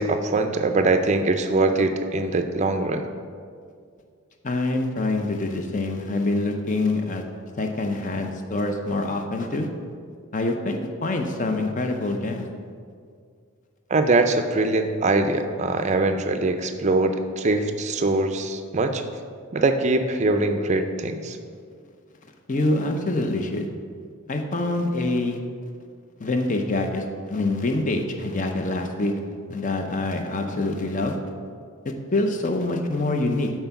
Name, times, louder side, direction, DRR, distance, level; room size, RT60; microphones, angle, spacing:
voice 1, 0.0-3.0 13.9-19.0 19.5-21.4, right 2 dB, 30° right, 7 dB, 0.4 m, -22 dB
voice 2, 4.4-7.2 7.6-9.7 10.3-12.5 22.5-23.7 24.3-25.4 26.2-29.1 29.5-31.2 31.8-33.6, left 2 dB, 35° left, 4 dB, 0.6 m, -25 dB
7.8 x 4.5 x 5.8 m, 2.1 s
head